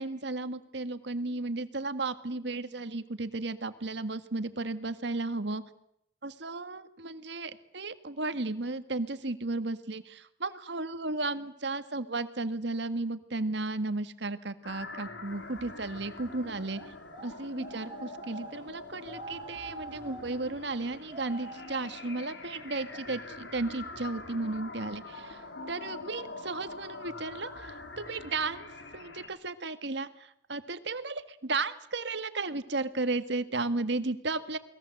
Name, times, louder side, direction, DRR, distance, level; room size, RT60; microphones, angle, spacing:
voice 1, 0.0-5.6 6.2-16.8 17.2-25.4 25.7-28.7 28.9-34.6, right 3 dB, 70° right, 11 dB, 1.8 m, -34 dB
sound 1, 14.6-29.3, left 3 dB, 85° left, 4.1 m, -44 dB
sound 2, 15.4-15.6 16.2-23.8 24.1-24.4 25.4-25.5 25.9-26.3 26.9-27.2 27.8-27.9 28.1-28.2, right 2 dB, 25° right, 6.5 m, -47 dB
29.0 x 21.0 x 7.9 m, 0.73 s
head